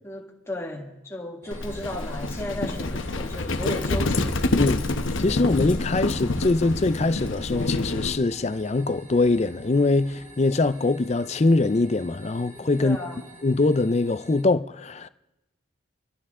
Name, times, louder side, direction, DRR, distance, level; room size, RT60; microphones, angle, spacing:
voice 1, 0.0-4.7 12.8-13.2, left 1 dB, 15° left, 1.7 m, -35 dB
sound 1, 1.4-14.4, right 1 dB, 40° right, 2.0 m, -48 dB
Livestock farm animals working animals, 1.5-8.2, left 2 dB, 85° left, 1.0 m, -27 dB
voice 2, 5.2-13.0 13.4-15.1, left 3 dB, 35° left, 0.4 m, -23 dB
27.5 x 12.5 x 3.7 m
head